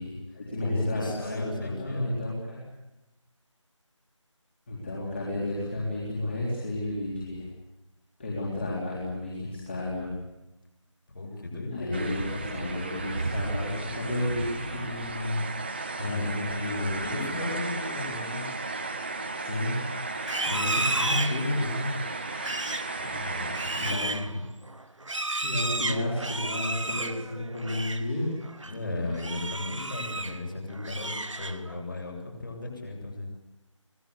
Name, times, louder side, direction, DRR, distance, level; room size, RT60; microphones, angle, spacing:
voice 1, 0.0-2.6 4.7-7.5 8.2-10.1 11.7-15.4 16.0-17.0 19.4-19.8 20.4-22.0 23.6-24.3 24.8-24.9 25.4-28.4, left 1 dB, 20° left, -4 dB, 3.7 m, -32 dB
voice 2, 0.6-2.2 11.1-12.3 15.9-18.4 22.9-24.4 28.6-33.3, left 2 dB, 40° left, 1 dB, 7.7 m, -35 dB
sound 1, 11.9-23.9, right 3 dB, 20° right, 1.2 m, -34 dB
Livestock farm animals working animals, 20.2-28.1 28.4-28.7 29.1-30.4 30.7-31.8, right 2 dB, 70° right, 1.2 m, -33 dB
25.0 x 19.0 x 8.4 m, 0.95 s
figure-of-eight pair, 170°, 16 cm